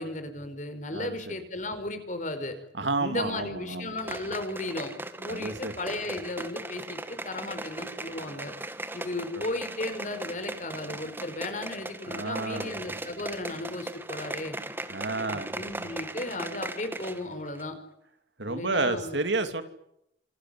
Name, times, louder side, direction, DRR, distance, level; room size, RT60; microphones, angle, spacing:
voice 1, 0.0-2.5 3.0-8.5 8.9-14.6 15.3-17.7 18.5-19.1, left 2 dB, 45° left, 9 dB, 4.8 m, -35 dB
voice 2, 2.8-3.9 5.3-5.7 12.1-12.7 14.9-15.6 18.4-19.6, right 3 dB, 90° right, 8 dB, 2.8 m, -30 dB
sound 1, 4.0-17.3 17.6-17.7, right 1 dB, 10° right, 1.7 m, -38 dB
27.0 x 20.5 x 9.6 m, 0.79 s
head